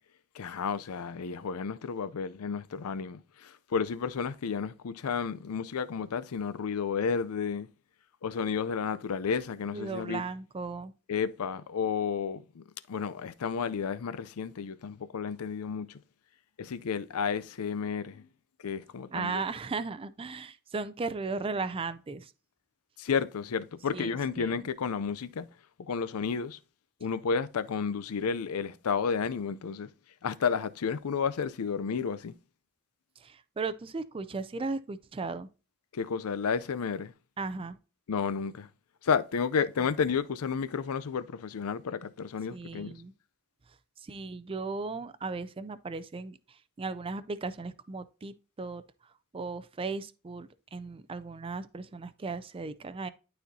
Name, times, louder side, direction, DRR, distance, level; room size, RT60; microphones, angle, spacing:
voice 1, 0.3-7.7 8.2-10.2 11.1-16.0 16.6-18.3 18.6-19.4 23.0-25.5 25.9-26.6 27.0-29.9 30.2-32.3 35.9-37.1 38.1-38.7 39.0-42.9, left 6 dB, 90° left, 0.5 m, -32 dB
voice 2, 9.7-10.9 19.1-22.3 23.9-24.6 33.2-35.5 37.4-37.8 42.5-43.1 44.0-48.8 49.3-53.1, right 4 dB, 25° right, 0.4 m, -36 dB
11.5 x 4.3 x 2.7 m
head